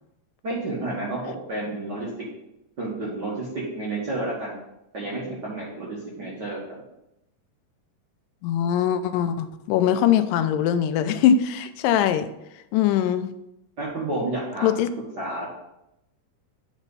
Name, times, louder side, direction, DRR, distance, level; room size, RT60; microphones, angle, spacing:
voice 1, 0.4-2.1 2.8-4.5 4.9-6.6 13.8-14.9 15.2-15.5, right 2 dB, 50° right, -5 dB, 1.3 m, -30 dB
voice 2, 8.4-12.3 12.7-13.3 14.6-14.9, left 9 dB, 85° left, 10 dB, 2.2 m, -21 dB
8.1 x 4.2 x 5.3 m, 0.86 s
omnidirectional pair, 3.8 m